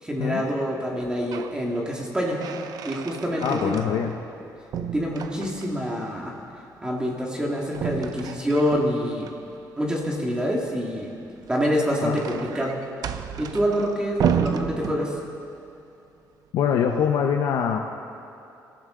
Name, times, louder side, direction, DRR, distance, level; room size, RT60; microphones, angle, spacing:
voice 1, 0.0-2.4 2.8-3.9 4.9-6.3 6.8-9.3 9.8-11.1 11.5-12.8 13.1-15.2, equal, 10° right, -2 dB, 2.0 m, -26 dB
sound 1, 0.9-1.6 2.0-4.4 4.7-5.9 7.7-9.3 11.4-15.5, right 8 dB, 65° right, 0.8 m, -32 dB
voice 2, 3.4-4.1 12.0-12.2 16.5-17.8, left 7 dB, 85° left, 3 dB, 0.9 m, -23 dB
25.5 x 15.0 x 3.8 m, 2.7 s
cardioid pair, 140°, 7 cm